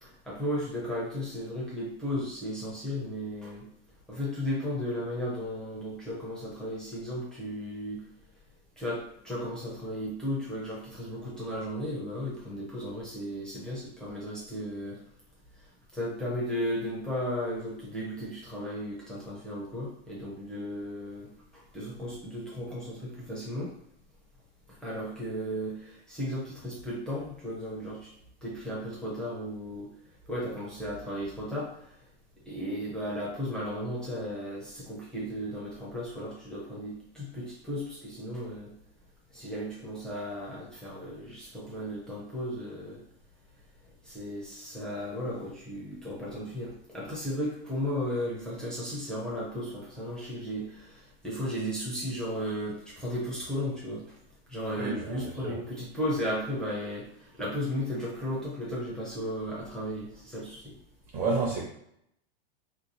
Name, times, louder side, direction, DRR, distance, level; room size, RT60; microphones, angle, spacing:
voice 1, 0.0-3.6 4.1-8.0 8.8-15.0 15.9-23.7 24.8-28.1 28.4-29.9 30.3-31.7 32.5-38.7 39.3-43.0 44.0-54.0 54.5-60.7, equal, ahead, -6 dB, 0.4 m, -35 dB
voice 2, 54.8-55.6 61.1-61.6, right 3 dB, 35° right, -3 dB, 0.7 m, -30 dB
3.0 x 2.3 x 3.9 m, 0.73 s
supercardioid pair, 165°, 32 cm